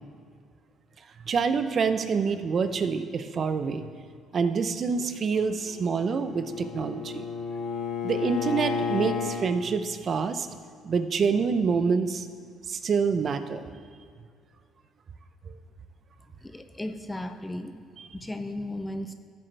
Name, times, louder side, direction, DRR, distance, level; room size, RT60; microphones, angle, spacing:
voice 1, 1.2-3.9 4.3-7.2 8.0-10.5 10.8-12.3 12.7-13.6 15.5-15.6 18.0-18.1, right 5 dB, 45° right, 10 dB, 0.7 m, -26 dB
Bowed string instrument, 5.6-9.4, left 6 dB, 70° left, 2.2 m, -32 dB
voice 2, 16.4-17.9 18.1-19.1, left 1 dB, 10° left, 8 dB, 0.6 m, -35 dB
13.5 x 7.7 x 3.4 m, 2.2 s
supercardioid pair, 85°, 0 cm